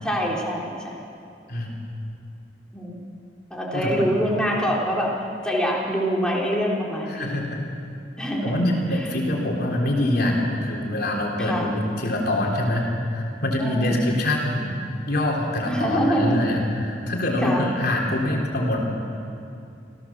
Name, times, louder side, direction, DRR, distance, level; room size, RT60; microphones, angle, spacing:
voice 1, 0.0-1.0 2.7-3.0 3.5-5.1 5.4-7.4 8.2-8.6 8.9-9.1 11.4-11.7 13.6-14.0 15.7-16.4 17.4-17.7, equal, 5° left, -4 dB, 3.9 m, -25 dB
voice 2, 3.7-4.1 7.1-7.6 8.4-14.8 15.0-19.0, left 1 dB, 60° left, 0 dB, 3.6 m, -24 dB
27.5 x 16.0 x 7.3 m, 2.6 s
head